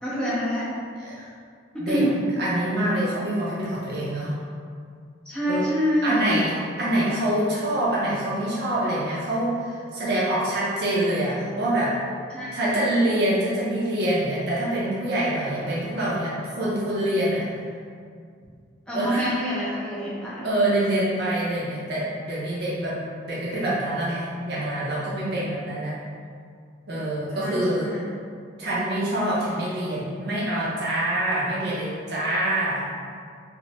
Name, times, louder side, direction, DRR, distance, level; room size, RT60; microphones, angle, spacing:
voice 1, 0.0-0.8 1.9-2.2 5.3-6.3 12.3-12.9 18.9-20.5 27.3-28.1, equal, 5° left, -8 dB, 0.5 m, -27 dB
voice 2, 2.4-4.3 5.5-5.6 6.0-11.9 12.5-17.5 18.9-19.2 20.4-23.0 23.3-26.0 26.9-27.9 28.6-32.9, right 1 dB, 55° right, -7 dB, 0.5 m, -25 dB
3.0 x 2.1 x 2.8 m, 2.2 s
head